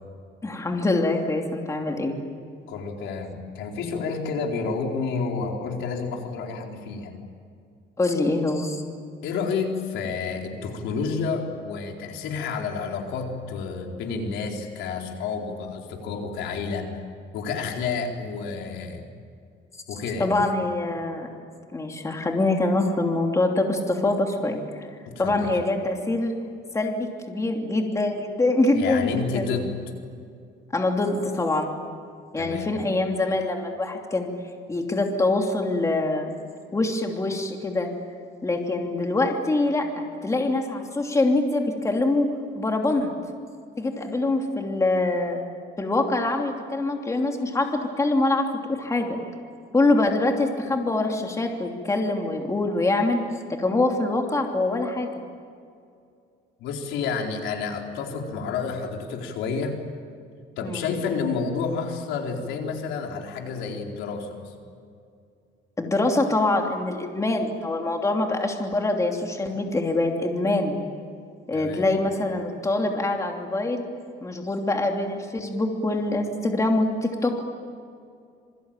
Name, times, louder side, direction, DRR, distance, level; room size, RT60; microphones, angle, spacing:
voice 1, 0.4-2.2 8.0-8.8 20.2-21.3 21.7-24.9 25.2-26.3 26.7-29.1 29.3-29.5 30.7-31.7 32.3-34.3 34.7-36.3 36.7-37.9 38.4-43.1 43.8-45.4 45.8-49.2 49.7-53.2 53.5-55.1 60.6-60.8 65.8-70.8 71.5-73.8 74.2-77.5, left 2 dB, 15° left, 2 dB, 3.0 m, -24 dB
voice 2, 2.7-7.1 9.2-16.9 17.3-19.0 19.9-20.3 25.0-25.5 28.7-29.7 32.4-32.7 56.6-59.8 60.6-64.5 71.5-71.9, left 5 dB, 85° left, 1 dB, 4.5 m, -30 dB
27.0 x 24.0 x 9.1 m, 2.3 s
cardioid pair, 140°, 19 cm